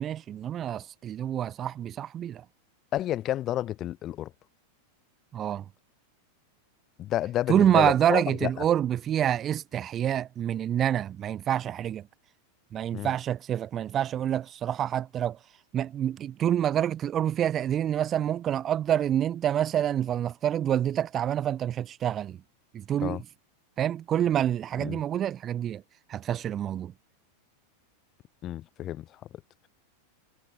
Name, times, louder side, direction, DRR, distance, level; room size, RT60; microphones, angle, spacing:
voice 1, 0.0-2.4 5.3-5.6 7.5-12.0 12.7-15.4 15.7-22.4 22.7-23.2 23.8-25.8 26.1-26.9, right 10 dB, 30° right, 0.6 m, -27 dB
voice 2, 2.9-4.3 7.0-8.6 12.9-13.1 23.0-23.2 24.8-25.0 28.4-29.1, left 13 dB, 30° left, 4.2 m, -30 dB
figure-of-eight pair, 90°, 0 cm